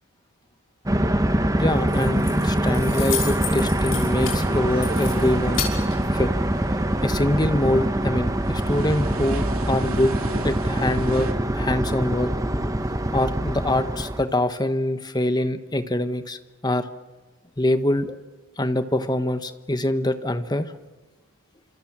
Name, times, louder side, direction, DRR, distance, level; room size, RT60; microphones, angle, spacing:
sound 1, 0.9-14.2, right 1 dB, 15° right, 1.1 m, -24 dB
voice 1, 1.6-5.6 6.1-6.3 7.0-10.1 10.4-11.3 11.5-12.3 13.1-16.4 16.6-16.9 17.6-18.2 18.6-20.7, left 1 dB, 20° left, 10 dB, 1.1 m, -24 dB
Keys jangling, 1.7-6.7, left 8 dB, 70° left, 5.7 m, -34 dB
sound 2, 3.4-11.3, right 3 dB, 90° right, 2.9 m, -39 dB
28.5 x 27.0 x 7.5 m, 1.2 s
head